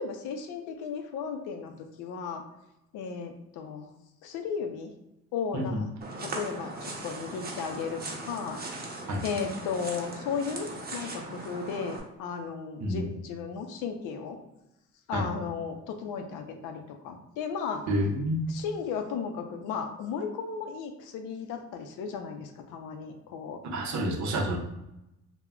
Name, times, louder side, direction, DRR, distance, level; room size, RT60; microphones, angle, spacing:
voice 1, 0.0-2.4 2.9-3.9 4.2-4.9 5.3-5.9 6.2-8.6 9.2-14.4 15.1-17.8 18.5-23.6, left 6 dB, 90° left, 6 dB, 0.5 m, -35 dB
voice 2, 5.5-5.8 9.1-9.2 12.8-13.1 15.1-15.3 17.9-18.5 23.7-24.6, equal, 70° right, 2 dB, 0.7 m, -28 dB
sound 1, 6.0-12.0, right 2 dB, 30° right, 0.6 m, -39 dB
2.1 x 2.1 x 3.6 m, 0.90 s
cardioid pair, 90°, 30 cm